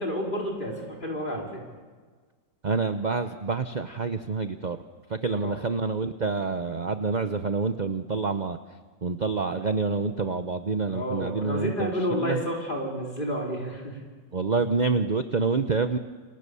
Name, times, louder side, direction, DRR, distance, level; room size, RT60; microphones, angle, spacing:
voice 1, 0.0-1.6 5.4-5.6 10.9-14.0, equal, 25° left, -1 dB, 4.8 m, -30 dB
voice 2, 2.6-4.8 5.1-8.6 9.0-12.4 14.3-16.0, right 4 dB, 45° right, 9 dB, 0.6 m, -27 dB
28.5 x 26.0 x 7.0 m, 1.5 s
omnidirectional pair, 2.0 m